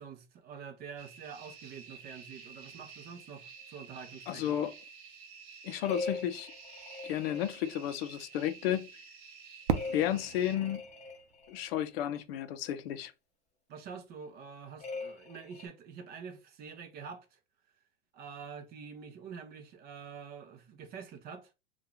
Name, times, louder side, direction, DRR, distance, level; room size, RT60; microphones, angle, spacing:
voice 1, 0.0-4.6 13.7-17.4 18.1-21.5, right 6 dB, 25° right, 0.5 m, -46 dB
sound 1, 1.0-10.6, right 5 dB, 45° right, 1.3 m, -51 dB
voice 2, 4.3-4.7 5.6-6.5 7.0-8.9 9.9-10.8 11.5-13.1, left 11 dB, 55° left, 0.5 m, -32 dB
sound 2, 5.8-8.1 9.7-11.8 14.8-15.7, left 3 dB, 20° left, 0.7 m, -42 dB
Fireworks, 9.7-12.5, right 7 dB, 65° right, 0.6 m, -37 dB
2.7 x 2.3 x 3.8 m
hypercardioid pair, 120°, 36 cm